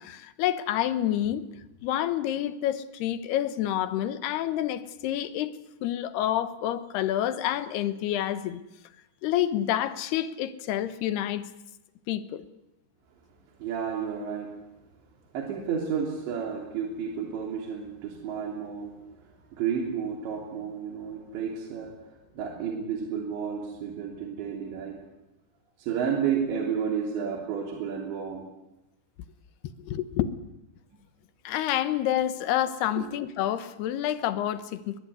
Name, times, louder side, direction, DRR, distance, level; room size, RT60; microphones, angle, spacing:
voice 1, 0.0-1.5 1.8-5.5 5.8-8.6 9.2-11.5 12.1-12.4 29.8-30.3 31.4-35.0, left 12 dB, 70° left, 13 dB, 2.9 m, -28 dB
voice 2, 13.6-14.5 15.3-18.9 19.5-21.9 22.4-25.0 25.8-28.4 33.0-33.1, right 7 dB, 70° right, 1 dB, 5.3 m, -31 dB
22.0 x 21.5 x 9.7 m, 0.92 s
omnidirectional pair, 5.3 m